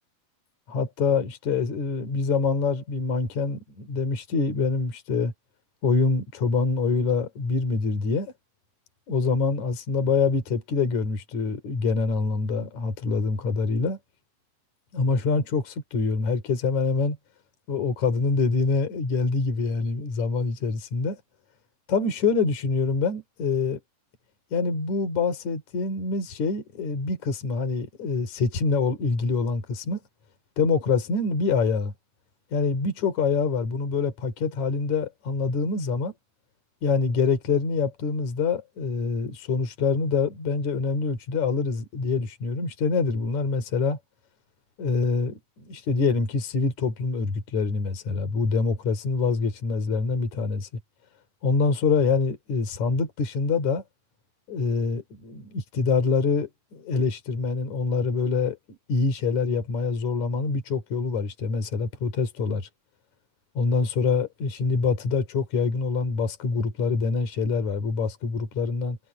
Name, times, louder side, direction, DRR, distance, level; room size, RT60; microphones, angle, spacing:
voice 1, 0.7-5.3 5.8-8.3 9.1-14.0 14.9-17.2 17.7-21.2 21.9-23.8 24.5-30.0 30.6-31.9 32.5-36.1 36.8-44.0 44.8-50.7 51.4-53.8 54.5-62.6 63.5-69.0, left 4 dB, 50° left, 5.0 m, -25 dB
omnidirectional pair, 4.2 m